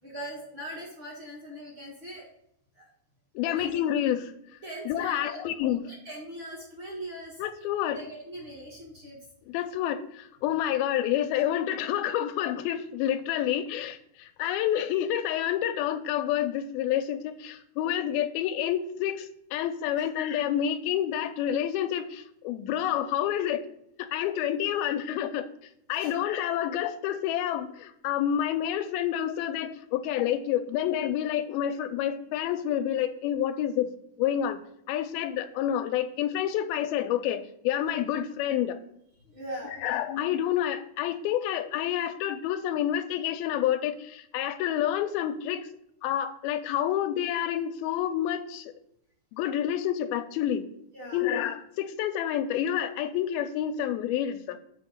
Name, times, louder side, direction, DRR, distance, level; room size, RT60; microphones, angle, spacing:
voice 1, 0.0-2.3 2.8-2.9 3.4-3.7 4.6-5.4 5.8-7.4 7.9-9.2 24.3-24.4 25.9-26.1 39.2-39.9 50.9-51.2, right 1 dB, 45° right, -4 dB, 1.8 m, -41 dB
voice 2, 3.4-4.3 4.9-5.8 7.4-8.0 9.5-23.7 24.0-25.5 25.9-33.9 34.2-34.6 34.9-38.8 39.8-45.7 46.0-48.7 49.3-50.7 51.1-54.6, left 11 dB, 85° left, 9 dB, 2.5 m, -28 dB
7.1 x 4.5 x 6.3 m, 0.74 s
omnidirectional pair, 4.3 m